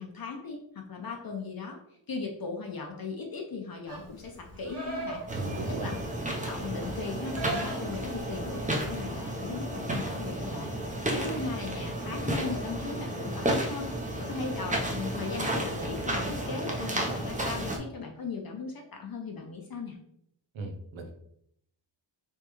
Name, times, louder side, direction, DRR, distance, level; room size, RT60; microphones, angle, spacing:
voice 1, 0.0-1.8 2.1-5.2 5.7-6.0 6.5-20.0, left 4 dB, 50° left, 2 dB, 0.6 m, -38 dB
Livestock farm animals working animals, 3.9-9.0, right 2 dB, 30° right, 1.2 m, -41 dB
sound 1, 5.3-17.8, right 1 dB, 15° right, 0.6 m, -32 dB
voice 2, 5.3-5.9 20.5-21.1, right 2 dB, 80° right, 4 dB, 0.8 m, -36 dB
3.5 x 3.1 x 3.0 m, 0.71 s
wide cardioid pair, 85°, 46 cm